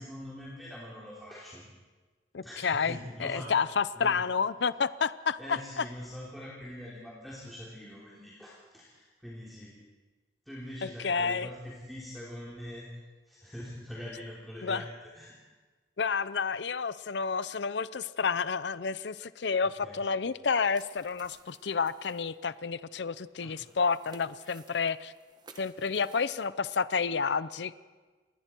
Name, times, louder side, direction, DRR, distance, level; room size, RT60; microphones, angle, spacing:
voice 1, 0.0-1.7 2.4-3.6 3.9-4.3 5.4-9.8 10.4-12.9 13.3-15.3 19.8-20.1 23.4-23.6, left 1 dB, ahead, -7 dB, 3.3 m, -43 dB
voice 2, 2.3-5.8 11.0-11.5 14.6-14.8 16.0-25.1 25.6-27.7, left 5 dB, 75° left, 16 dB, 0.6 m, -30 dB
sound 1, 20.7-26.5, right 3 dB, 25° right, 1.4 m, -57 dB
28.0 x 21.0 x 4.5 m, 1.3 s
head